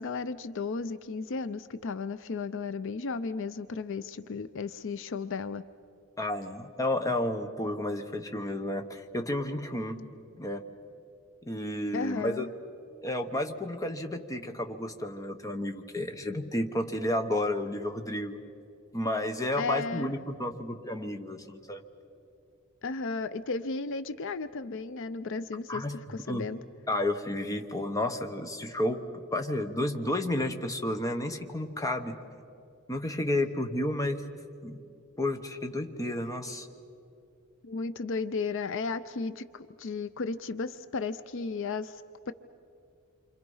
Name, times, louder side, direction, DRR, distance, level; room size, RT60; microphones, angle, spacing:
voice 1, 0.0-5.6 11.9-12.5 19.6-20.1 22.8-26.6 37.6-42.3, left 4 dB, 60° left, 13 dB, 0.5 m, -34 dB
voice 2, 6.2-10.0 10.4-10.6 11.4-12.5 13.0-18.4 18.9-21.8 25.7-26.0 26.3-26.4 26.9-29.0 29.3-32.2 32.9-34.2 34.6-34.8 35.2-36.7, left 1 dB, 15° left, 5 dB, 1.2 m, -31 dB
28.5 x 26.0 x 5.6 m, 2.6 s
head